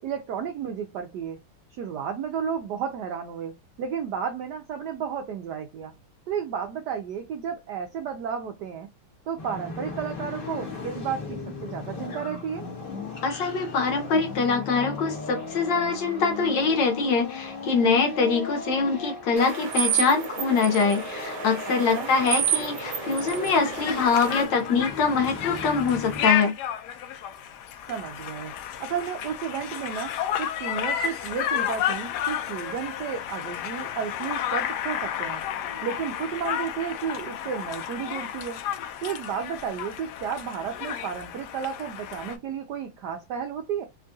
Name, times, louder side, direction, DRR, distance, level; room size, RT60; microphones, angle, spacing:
voice 1, 0.0-1.4 1.7-5.9 6.3-8.9 9.3-12.7 21.9-22.1 27.9-28.5 28.8-35.5 35.8-38.6 39.0-43.9, right 7 dB, 80° right, 0.9 m, -32 dB
sound 1, 9.4-26.3, left 4 dB, 45° left, 0.7 m, -37 dB
voice 2, 13.2-26.5, left 5 dB, 65° left, 1.3 m, -24 dB
sound 2, 19.4-24.5, right 9 dB, 60° right, 1.4 m, -30 dB
Conversation, 22.8-42.4, left 10 dB, 90° left, 0.9 m, -32 dB
3.5 x 2.3 x 2.6 m
omnidirectional pair, 2.4 m